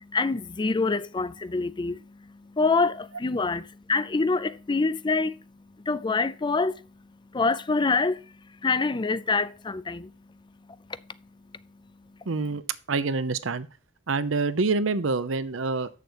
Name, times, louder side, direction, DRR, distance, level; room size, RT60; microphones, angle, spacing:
voice 1, 0.0-5.4 5.8-6.8 7.3-8.3 8.6-10.1, left 4 dB, 25° left, 0.4 m, -26 dB
voice 2, 12.3-12.6 12.9-13.7 14.1-15.9, right 3 dB, 80° right, 0.8 m, -26 dB
7.8 x 6.7 x 5.1 m
head